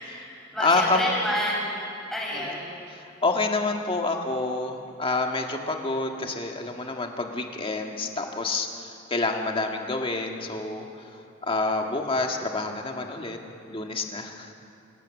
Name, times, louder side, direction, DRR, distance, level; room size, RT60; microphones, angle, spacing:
voice 1, 0.0-2.7, equal, ahead, -5 dB, 6.9 m, -30 dB
voice 2, 0.6-1.1 2.3-2.6 2.9-11.0 11.4-13.4 13.7-14.5, left 3 dB, 25° left, 3 dB, 1.7 m, -28 dB
28.5 x 16.5 x 7.2 m, 2.6 s
head